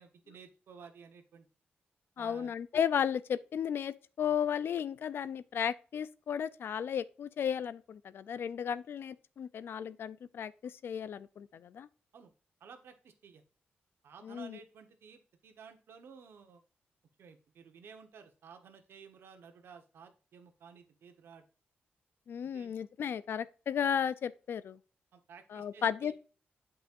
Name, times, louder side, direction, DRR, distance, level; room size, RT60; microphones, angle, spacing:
voice 1, 0.0-1.5 2.2-2.5 12.1-12.3 12.6-13.4 14.0-16.6 17.2-21.4 22.4-22.7 25.1-26.1, right 6 dB, 80° right, 1.2 m, -54 dB
voice 2, 2.2-11.9 14.2-14.6 22.3-24.8 25.5-26.1, left 8 dB, 70° left, 0.5 m, -34 dB
8.2 x 5.5 x 2.6 m
cardioid pair, 90°, 4 cm